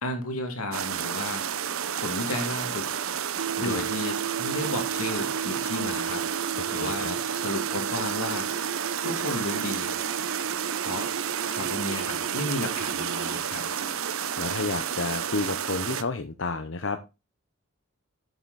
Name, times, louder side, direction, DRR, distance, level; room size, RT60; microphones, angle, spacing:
voice 1, 0.0-1.5 2.0-2.9 3.6-6.3 6.7-8.5 9.0-9.9 10.8-11.1 11.5-13.7, left 1 dB, 85° left, 6 dB, 2.5 m, -33 dB
sound 1, 0.7-16.0, right 8 dB, 75° right, 0.8 m, -31 dB
sound 2, 3.4-13.4, right 7 dB, 60° right, 0.4 m, -35 dB
voice 2, 6.6-7.2 14.1-17.0, left 3 dB, 60° left, 8 dB, 0.8 m, -31 dB
8.5 x 8.0 x 4.1 m, 0.27 s
head